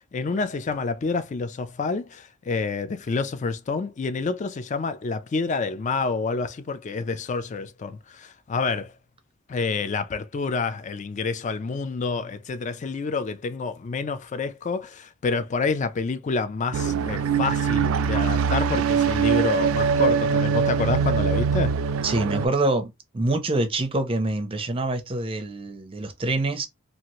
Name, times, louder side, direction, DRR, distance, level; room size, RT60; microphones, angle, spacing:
voice 1, 0.1-8.9 9.5-21.7, left 4 dB, 35° left, 0.3 m, -28 dB
sound 1, 16.7-22.5, right 6 dB, 80° right, 0.3 m, -22 dB
voice 2, 22.0-26.7, right 2 dB, 25° right, 0.5 m, -25 dB
2.7 x 2.5 x 3.0 m
head